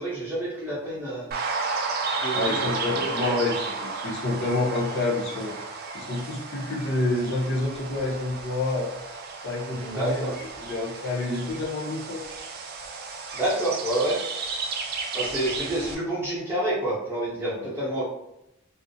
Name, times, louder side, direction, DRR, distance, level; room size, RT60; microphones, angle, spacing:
voice 1, 0.0-1.3 2.2-2.7 2.9-3.4 9.7-10.3 13.3-14.2 15.1-18.0, right 1 dB, 10° right, -8 dB, 0.6 m, -28 dB
sound 1, 1.3-16.0, right 4 dB, 45° right, 0.3 m, -33 dB
voice 2, 2.3-3.8 4.0-5.5 5.9-8.9 9.4-10.3 10.6-12.3 17.5-17.7, left 2 dB, 60° left, -2 dB, 0.6 m, -28 dB
2.4 x 2.0 x 2.6 m, 0.85 s
head